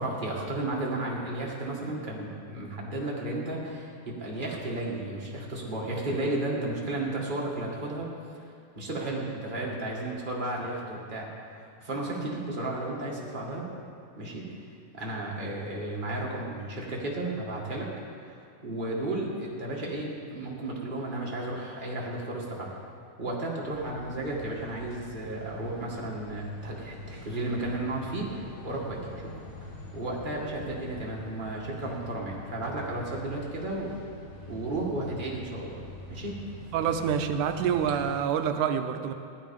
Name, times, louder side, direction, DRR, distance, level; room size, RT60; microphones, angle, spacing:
voice 1, 0.0-8.1 8.7-11.3 11.6-13.6 14.2-14.4 14.9-17.9 18.2-22.7 23.2-29.4 29.9-33.9 34.5-35.8 36.1-36.3, right 2 dB, 20° right, -3 dB, 1.5 m, -33 dB
sound 1, 23.7-38.2, left 1 dB, 90° left, 3.9 m, -44 dB
voice 2, 36.7-39.1, right 8 dB, 80° right, 7 dB, 2.2 m, -27 dB
15.5 x 11.5 x 5.3 m, 2.4 s
omnidirectional pair, 3.6 m